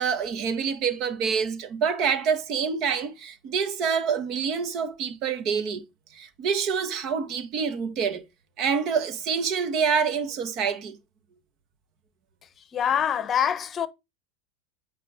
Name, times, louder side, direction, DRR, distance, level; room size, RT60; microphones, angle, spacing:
voice 1, 0.0-5.8 6.1-8.2 8.6-11.0, right 6 dB, 45° right, 1.3 m, -26 dB
voice 2, 12.7-13.9, left 8 dB, 30° left, 0.9 m, -24 dB
8.3 x 3.3 x 5.5 m
supercardioid pair, 115°, 0 cm